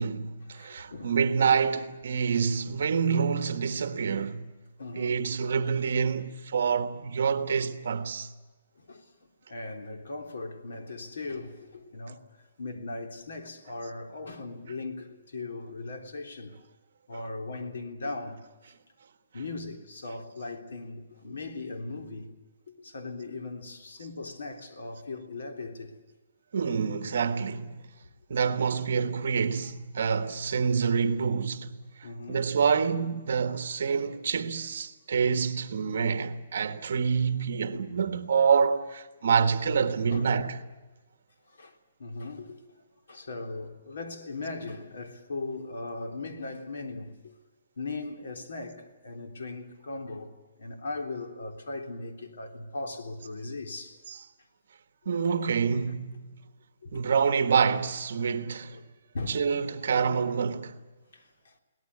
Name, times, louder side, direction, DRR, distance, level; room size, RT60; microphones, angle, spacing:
voice 1, 0.0-4.5 4.9-8.3 17.1-17.2 26.5-27.8 28.3-31.8 32.3-40.6 54.1-54.2 55.0-56.3 56.9-58.8 59.3-60.8, right 6 dB, 55° right, 1.4 m, -27 dB
voice 2, 0.5-1.2 4.1-4.3 4.8-5.2 8.8-9.1 9.5-12.2 12.6-16.6 17.1-18.4 19.3-22.3 22.7-25.9 32.0-32.5 39.2-39.3 40.1-40.5 41.5-41.7 42.0-42.6 43.1-47.3 47.8-50.3 50.6-54.0 56.8-57.0 58.7-58.9 59.1-59.4 61.1-61.5, left 3 dB, 70° left, 3.4 m, -38 dB
23.0 x 18.0 x 9.6 m
hypercardioid pair, 175°, 0 cm